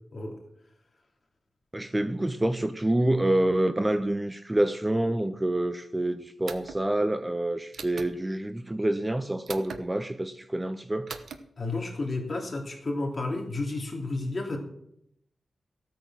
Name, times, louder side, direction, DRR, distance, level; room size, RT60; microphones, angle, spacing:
voice 1, 1.7-11.1, right 1 dB, 15° right, 0.5 m, -27 dB
sound 1, 6.5-6.8 7.7-8.1 9.5-9.8 11.1-11.4, right 5 dB, 75° right, 1.1 m, -39 dB
voice 2, 11.6-14.6, left 2 dB, 35° left, 2.9 m, -31 dB
15.5 x 9.0 x 6.2 m
wide cardioid pair, 145°, 0 cm